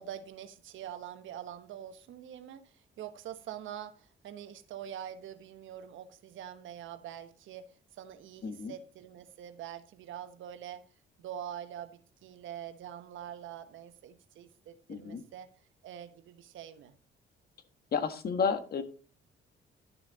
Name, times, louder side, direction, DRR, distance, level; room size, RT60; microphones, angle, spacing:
voice 1, 0.0-10.8 11.2-15.5 15.8-16.9, right 10 dB, 80° right, 1.2 m, -45 dB
voice 2, 8.4-8.7 14.9-15.2 17.9-18.8, left 6 dB, 50° left, 1.6 m, -31 dB
12.0 x 7.2 x 4.1 m
cardioid pair, 90°, 20 cm